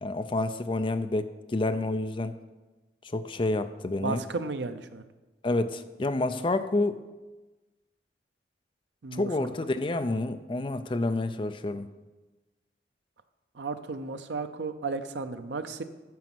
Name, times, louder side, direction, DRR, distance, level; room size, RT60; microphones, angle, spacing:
voice 1, 0.0-2.3 3.0-4.2 5.4-7.0 9.1-11.9, left 2 dB, 30° left, 10 dB, 0.4 m, -29 dB
voice 2, 4.0-5.0 9.0-9.5 13.5-15.8, right 4 dB, 85° right, 9 dB, 0.6 m, -34 dB
9.3 x 6.1 x 6.1 m, 1.2 s
head